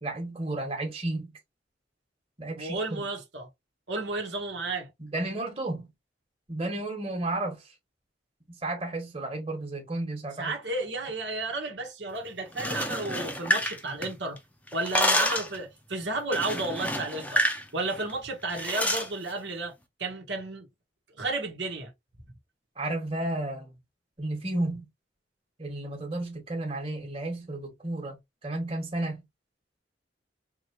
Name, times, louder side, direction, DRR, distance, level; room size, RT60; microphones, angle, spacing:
voice 1, 0.0-1.3 2.4-2.8 5.0-5.9 6.5-7.7 8.5-10.5 22.7-23.7 24.2-24.9 25.6-28.2 28.4-29.2, right 2 dB, 35° right, 1.6 m, -32 dB
voice 2, 2.6-3.5 3.9-4.9 10.4-14.4 14.7-17.4 17.7-19.7 20.0-20.7 21.2-21.9, right 2 dB, 75° right, 1.4 m, -32 dB
sound 1, 12.5-14.4 14.7-15.6 16.3-17.6 17.9-18.1 18.6-19.1, left 1 dB, 10° left, 0.7 m, -28 dB
4.5 x 3.1 x 2.9 m
head